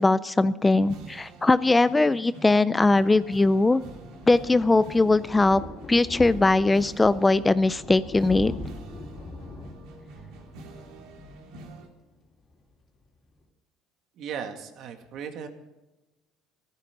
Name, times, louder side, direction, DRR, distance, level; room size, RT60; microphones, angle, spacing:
voice 1, 0.0-3.8 4.3-5.6 5.9-8.6, left 2 dB, 10° left, 16 dB, 0.4 m, -20 dB
sound 1, 0.6-11.9, right 2 dB, 75° right, 3.3 m, -47 dB
Thunder, 3.1-12.2 12.5-12.7 13.0-13.1 13.3-13.4, left 2 dB, 35° left, 3.8 m, -42 dB
voice 2, 14.2-15.5, right 7 dB, 55° right, 6 dB, 2.1 m, -36 dB
16.0 x 14.0 x 5.2 m, 1.0 s
cardioid pair, 130°, 0 cm